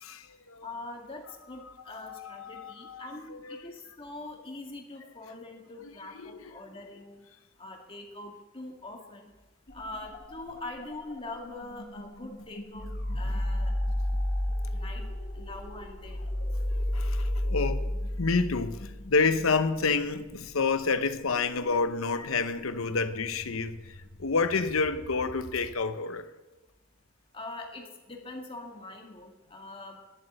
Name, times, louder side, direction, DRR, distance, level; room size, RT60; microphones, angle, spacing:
voice 1, 0.0-0.7 1.9-3.6 6.2-6.4 16.9-17.9 18.2-26.3, left 4 dB, 85° left, 0.8 m, -29 dB
voice 2, 0.6-7.2 7.6-9.3 9.7-13.7 14.7-15.1 15.3-16.3 22.2-22.3 27.3-30.0, left 2 dB, 25° left, 2.0 m, -43 dB
sound 1, 9.7-25.7, left 1 dB, 50° left, 1.2 m, -34 dB
11.0 x 7.6 x 9.0 m
head